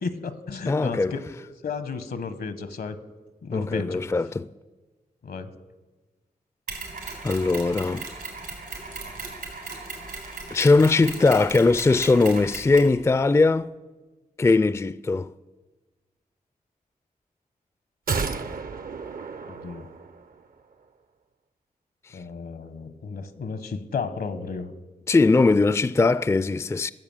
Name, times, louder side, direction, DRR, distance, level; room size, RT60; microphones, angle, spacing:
voice 1, 0.0-1.3 1.6-3.0 3.4-4.1 5.2-5.5 19.5-19.9 22.1-24.7, left 5 dB, 75° left, 1.0 m, -33 dB
voice 2, 0.7-1.2 3.5-4.5 7.2-8.0 10.5-13.7 14.4-15.3 25.1-26.9, left 3 dB, 15° left, 0.3 m, -20 dB
Mechanisms, 6.7-13.0, right 3 dB, 85° right, 3.7 m, -37 dB
sound 1, 18.1-20.4 20.7-20.8, right 5 dB, 65° right, 0.7 m, -32 dB
13.5 x 7.1 x 7.2 m
cardioid pair, 40°, 16 cm